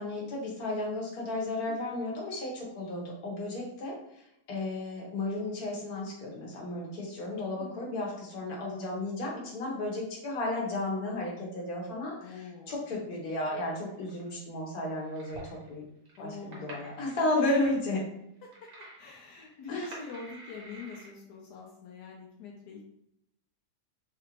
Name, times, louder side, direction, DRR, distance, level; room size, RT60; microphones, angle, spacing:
voice 1, 0.0-4.0 4.5-12.4 12.7-15.8 16.2-18.0 19.7-19.9, left 2 dB, 65° left, -3 dB, 1.5 m, -33 dB
voice 2, 12.2-12.8 16.2-16.9 17.4-17.7 18.4-18.5 19.0-22.9, left 4 dB, 90° left, -2 dB, 1.2 m, -44 dB
sound 1, 13.3-14.4 15.0-15.7 16.1-17.6 17.9-18.0 18.4-19.2 19.5-21.1, right 2 dB, 70° right, 1.6 m, -48 dB
4.1 x 2.5 x 3.0 m, 0.79 s
omnidirectional pair, 1.7 m